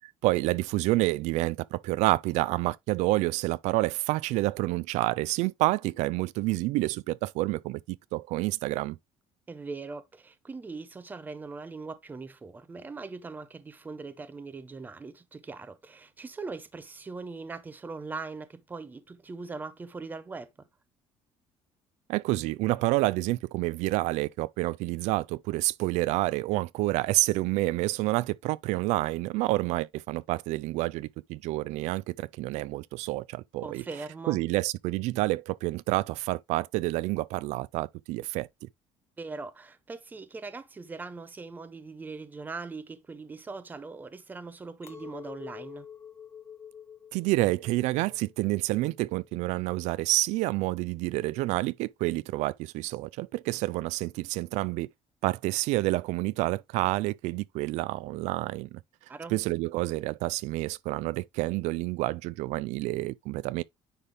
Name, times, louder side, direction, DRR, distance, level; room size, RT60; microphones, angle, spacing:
voice 1, 0.2-9.0 22.1-33.8 34.3-38.5 47.1-54.9 55.2-58.8 59.3-63.6, right 19 dB, 85° right, 0.4 m, -28 dB
voice 2, 9.5-20.7 33.6-34.4 39.2-45.9 59.1-59.4, right 4 dB, 15° right, 0.6 m, -41 dB
Chink clink, 44.8-50.2, left 8 dB, 25° left, 0.8 m, -48 dB
9.8 x 3.5 x 3.4 m
cardioid pair, 155°, 12 cm